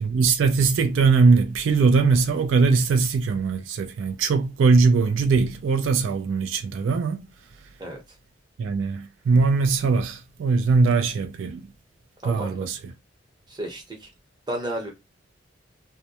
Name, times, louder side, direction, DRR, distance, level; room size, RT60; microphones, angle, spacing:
voice 1, 0.0-7.3 8.6-11.6 12.2-12.9, right 4 dB, 90° right, 0.4 m, -21 dB
voice 2, 12.2-12.7 13.5-14.1 14.5-14.9, right 1 dB, 20° right, 0.8 m, -32 dB
2.2 x 2.1 x 2.8 m
head